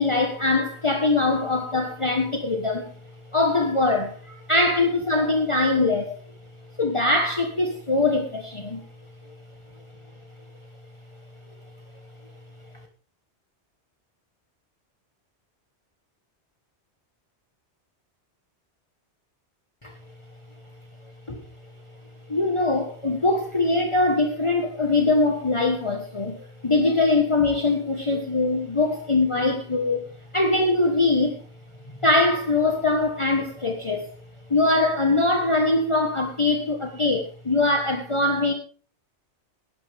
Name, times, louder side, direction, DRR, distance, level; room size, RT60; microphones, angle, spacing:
voice 1, 0.0-2.9 3.3-6.1 6.8-8.9 19.8-19.9 21.3-21.4 22.3-26.4 26.6-30.0 30.3-31.4 32.0-34.1 34.5-38.5, left 2 dB, 25° left, 1.5 m, -22 dB
16.5 x 12.0 x 3.6 m
omnidirectional pair, 1.1 m